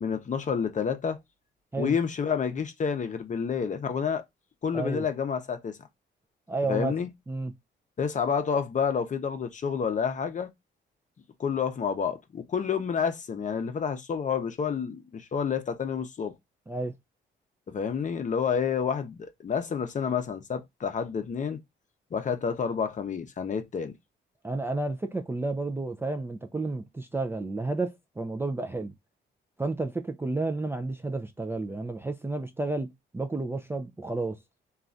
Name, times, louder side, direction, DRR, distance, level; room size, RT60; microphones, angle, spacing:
voice 1, 0.0-1.2 1.8-4.2 4.6-5.8 6.7-7.1 8.0-10.5 11.4-16.3 17.7-21.6 22.1-23.9, left 6 dB, 40° left, 0.6 m, -29 dB
voice 2, 4.7-5.0 6.5-6.9 7.3-7.5 16.7-16.9 24.4-28.9 29.6-32.9 33.1-34.4, right 2 dB, 10° right, 0.4 m, -31 dB
3.1 x 2.4 x 2.5 m
cardioid pair, 90°, 20 cm